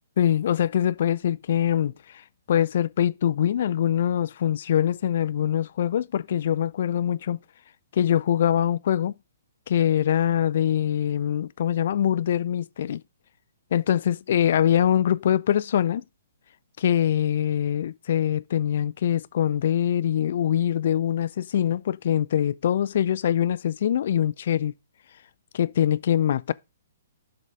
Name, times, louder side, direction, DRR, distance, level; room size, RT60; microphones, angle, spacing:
voice 1, 0.0-1.9 2.5-7.4 7.9-9.1 9.7-13.0 13.7-16.0 16.8-24.7 25.5-26.5, left 10 dB, 50° left, 0.4 m, -23 dB
7.2 x 5.2 x 5.1 m
figure-of-eight pair, 120°, 0 cm